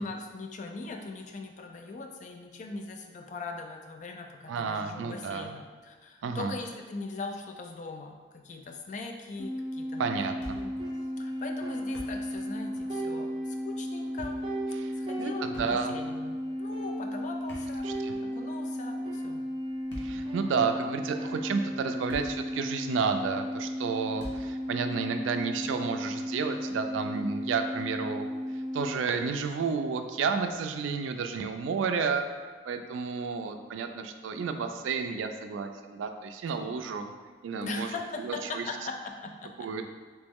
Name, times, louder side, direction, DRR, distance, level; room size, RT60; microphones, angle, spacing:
voice 1, 0.0-10.7 11.2-14.4 14.9-19.5 37.6-39.7, left 3 dB, 40° left, 4 dB, 0.3 m, -40 dB
voice 2, 4.5-5.5 6.2-6.5 10.0-10.6 14.8-14.9 15.2-16.0 17.8-18.1 20.0-28.3 28.7-32.3 32.6-37.1 37.4-37.9 38.2-38.6 39.6-39.9, right 5 dB, 85° right, 7 dB, 0.3 m, -31 dB
sound 1, 9.4-29.0, equal, 10° right, 1.3 m, -35 dB
Thump thud, 10.4-10.9 11.2-11.3 11.7-12.5 12.7-12.9 13.9-14.5 15.5-16.1 17.3-18.3 19.7-20.3 21.1-21.2 21.8-22.6 22.8-22.9 24.2-24.6, equal, 65° left, 0.9 m, -44 dB
sound 2, 10.8-12.6 12.9-16.2 16.5-16.6 16.7-17.3 17.8-19.8 20.3-21.9, right 3 dB, 30° right, 0.5 m, -42 dB
3.1 x 3.0 x 3.5 m, 1.5 s
head